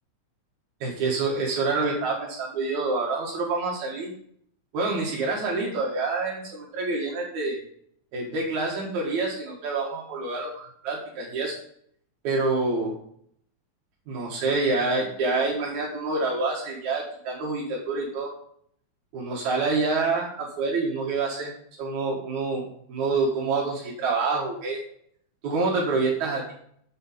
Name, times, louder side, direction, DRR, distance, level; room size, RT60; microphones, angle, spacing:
voice 1, 0.8-4.1 4.7-7.6 8.1-11.6 12.2-12.9 14.1-18.3 19.1-21.5 21.8-24.8 25.4-26.5, right 3 dB, 80° right, -2 dB, 3.0 m, -27 dB
7.8 x 7.8 x 5.0 m, 0.65 s
omnidirectional pair, 3.3 m